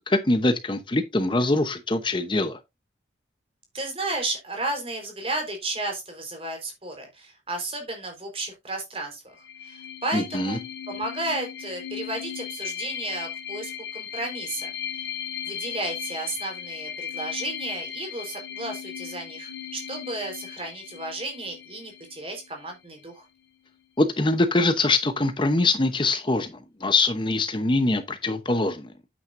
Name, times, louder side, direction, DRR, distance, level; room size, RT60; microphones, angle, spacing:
voice 1, 0.0-2.6 10.1-10.6 24.0-28.9, left 2 dB, 25° left, 0.8 m, -23 dB
voice 2, 3.7-9.2 9.6-14.7 15.4-23.2, right 2 dB, 30° right, 4.3 m, -33 dB
sound 1, 9.4-22.8, left 8 dB, 75° left, 2.9 m, -37 dB
9.4 x 9.0 x 2.6 m
head